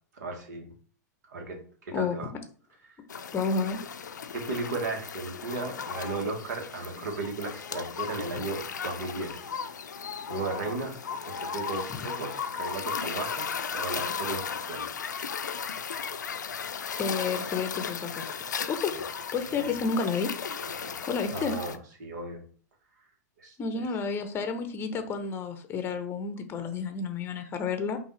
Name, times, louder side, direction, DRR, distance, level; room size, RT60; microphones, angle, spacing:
voice 1, 0.2-0.7 1.3-2.3 4.3-9.4 9.9-14.8 18.9-19.0 19.5-19.7 20.8-20.9 21.3-21.7 22.0-22.4 23.4-23.8, right 3 dB, 70° right, 3 dB, 1.5 m, -35 dB
sound 1, 3.1-21.8, left 6 dB, 80° left, 0.5 m, -36 dB
voice 2, 3.3-3.8 11.9-12.0 17.0-18.4 18.7-18.9 19.3-20.3 21.1-21.5 23.6-28.0, left 5 dB, 25° left, 8 dB, 0.7 m, -30 dB
5.4 x 2.7 x 3.1 m, 0.43 s
figure-of-eight pair, 100°, 10 cm